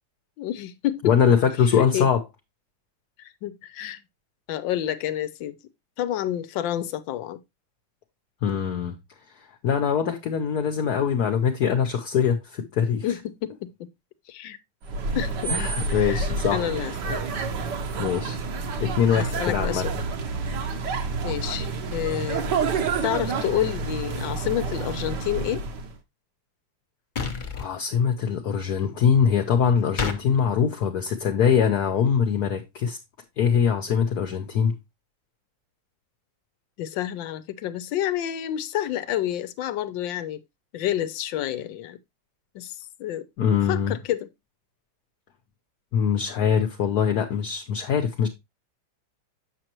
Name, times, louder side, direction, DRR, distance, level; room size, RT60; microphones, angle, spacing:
voice 1, 0.4-1.1 1.7-2.1 3.2-4.0 4.5-5.6 6.0-7.4 13.0-13.7 14.3-14.6 15.1-15.5 15.9-16.2 16.5-17.2 19.1-19.9 21.2-22.4 23.0-25.6 36.8-40.4 40.7-42.0 42.5-43.3 43.7-44.3, left 12 dB, 80° left, 1.4 m, -29 dB
voice 2, 1.0-2.2 8.4-9.0 9.6-13.1 15.5-16.7 18.0-18.4 18.8-20.0 27.5-33.0 33.4-34.7 43.4-43.9 45.9-48.3, left 7 dB, 60° left, 1.3 m, -23 dB
sound 1, 14.8-25.9, right 4 dB, 70° right, 1.5 m, -29 dB
sound 2, 27.2-27.7 30.0-30.2, left 5 dB, 35° left, 0.8 m, -28 dB
7.7 x 6.5 x 2.9 m
omnidirectional pair, 2.0 m